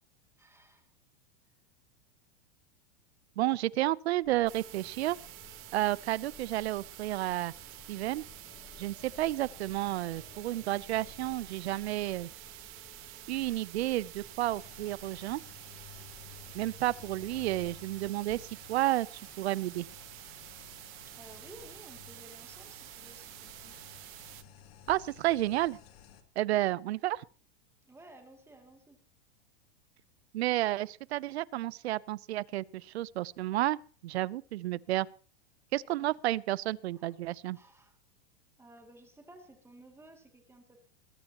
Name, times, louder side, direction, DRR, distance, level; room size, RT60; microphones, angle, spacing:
voice 1, 0.4-0.9 13.3-13.6 21.1-23.8 27.8-29.0 36.9-37.2 37.5-38.0 38.6-40.8, right 1 dB, 10° right, 2.5 m, -55 dB
voice 2, 3.4-5.2 5.7-7.5 7.9-8.3 8.8-12.3 13.3-15.4 16.5-19.1 19.4-19.9 24.9-25.8 26.4-27.2 30.3-35.1 35.7-37.6, right 15 dB, 85° right, 0.7 m, -31 dB
sound 1, 4.2-17.7, left 6 dB, 30° left, 2.8 m, -56 dB
sound 2, 4.5-24.4, right 19 dB, 40° right, 1.0 m, -49 dB
sound 3, 14.5-26.2, left 7 dB, 70° left, 2.8 m, -54 dB
21.0 x 13.5 x 3.0 m
supercardioid pair, 135°, 32 cm